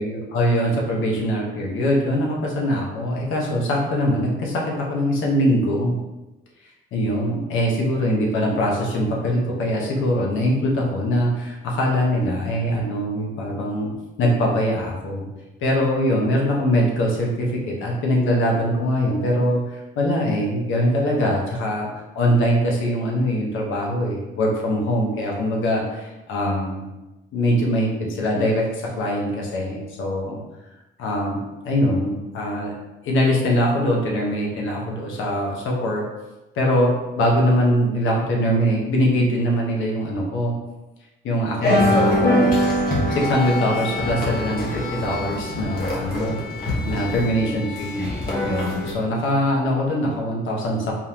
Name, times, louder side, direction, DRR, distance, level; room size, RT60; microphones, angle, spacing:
voice 1, 0.0-5.9 6.9-13.9 14.2-15.3 15.6-26.9 27.3-30.4 31.0-32.7 33.1-36.0 36.5-40.5 41.2-42.5 43.1-46.4 46.8-48.1 48.4-50.9, equal, 85° left, -2 dB, 1.2 m, -22 dB
sound 1, 41.6-48.9, left 1 dB, 50° left, 1.4 m, -23 dB
4.5 x 3.7 x 2.9 m, 1.0 s
cardioid pair, 90°, 20 cm